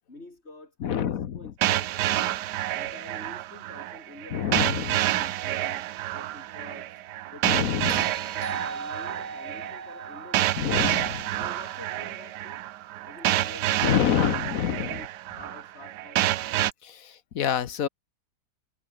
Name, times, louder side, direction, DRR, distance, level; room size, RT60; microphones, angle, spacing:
voice 1, 0.1-2.4 2.7-6.9 7.3-10.9 11.4-12.6 13.0-14.4 14.8-16.2, left 2 dB, 40° left, 4.5 m, -48 dB
voice 2, 0.8-1.5 4.3-5.0 7.4-8.0 10.6-11.2 13.8-15.0 16.8-17.9, left 9 dB, 60° left, 1.3 m, -27 dB
sound 1, 1.6-16.7, right 14 dB, 90° right, 1.3 m, -28 dB
sound 2, 7.9-12.2 14.4-14.5, right 4 dB, 30° right, 1.6 m, -40 dB
omnidirectional pair, 1.7 m